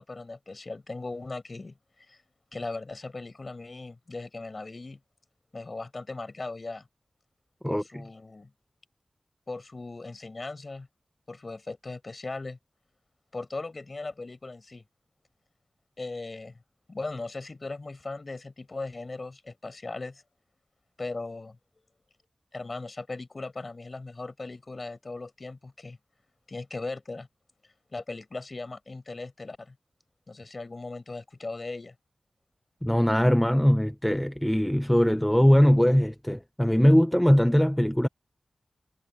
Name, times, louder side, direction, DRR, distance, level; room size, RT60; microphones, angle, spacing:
voice 1, 0.0-1.8 2.1-2.2 2.5-5.0 5.5-6.9 7.7-8.5 9.5-10.9 11.3-12.6 13.3-14.8 16.0-16.6 16.9-20.2 21.0-21.6 22.5-26.0 26.5-27.3 27.9-29.7 30.3-31.9, left 3 dB, 40° left, 6.7 m, -38 dB
voice 2, 7.6-8.0 32.8-38.1, equal, 5° left, 0.6 m, -21 dB
wide cardioid pair, 100°, 0 cm